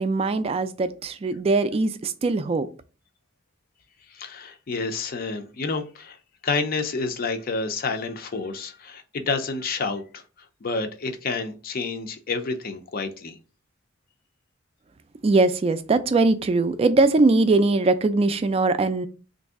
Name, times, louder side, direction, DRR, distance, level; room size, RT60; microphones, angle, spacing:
voice 1, 0.0-2.7 15.2-19.1, right 3 dB, 30° right, 0.3 m, -21 dB
voice 2, 4.1-6.2 6.4-10.2 10.6-13.4, left 4 dB, 45° left, 0.5 m, -29 dB
3.1 x 2.6 x 3.6 m
head